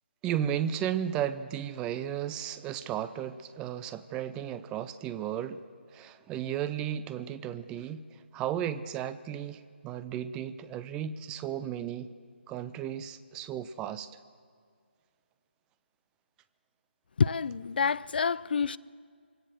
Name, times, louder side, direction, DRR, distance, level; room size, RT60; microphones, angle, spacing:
voice 1, 0.2-5.6 5.9-8.1 8.3-12.1 12.5-14.1, right 10 dB, 15° right, 0.5 m, -34 dB
voice 2, 17.2-18.8, left 5 dB, 55° left, 0.4 m, -27 dB
23.5 x 17.0 x 6.6 m
figure-of-eight pair, 150°, 6 cm